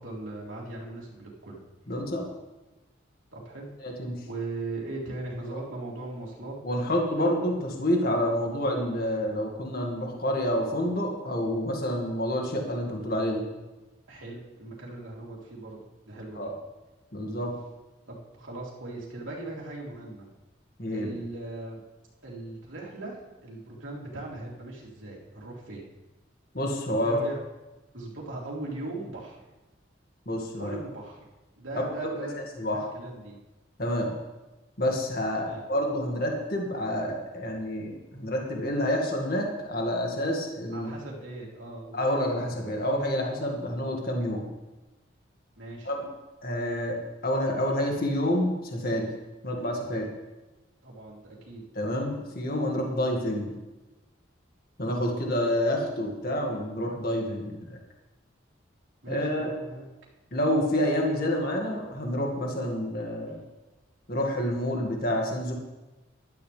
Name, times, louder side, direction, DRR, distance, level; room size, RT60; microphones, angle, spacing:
voice 1, 0.0-1.6 3.3-4.0 4.2-6.5 14.1-16.5 18.1-20.3 20.9-21.8 22.2-25.9 27.0-27.3 27.9-29.4 30.6-31.2 31.6-32.4 32.7-33.4 35.4-35.6 40.7-42.0 45.6-45.9 50.8-51.6 54.9-55.3 59.0-59.9, right 2 dB, 90° right, -3 dB, 3.4 m, -39 dB
voice 2, 1.9-2.2 3.8-4.2 6.6-13.4 16.4-16.5 17.1-17.5 20.8-21.1 26.5-27.2 30.3-30.8 31.8-32.3 32.6-32.9 33.8-34.1 34.8-40.9 41.9-44.4 45.8-46.1 46.4-49.1 49.4-50.1 51.7-53.5 54.8-57.8 59.1-59.5 60.3-63.4 64.1-65.5, equal, 50° left, 0 dB, 2.1 m, -28 dB
15.5 x 12.5 x 3.5 m, 1.1 s
head